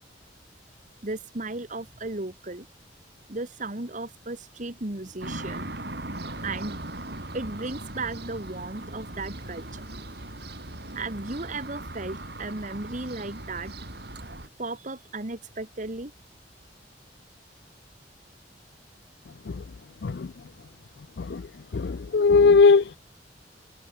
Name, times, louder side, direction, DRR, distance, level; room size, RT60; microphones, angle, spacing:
voice 1, 1.0-2.7 3.3-5.7 6.4-6.8 7.3-9.9 10.9-13.7 14.6-16.1, right 2 dB, 45° right, 1.9 m, -35 dB
sound 1, 5.2-14.5, right 1 dB, 60° right, 6.7 m, -38 dB
voice 2, 21.7-22.9, left 4 dB, 65° left, 0.5 m, -19 dB
head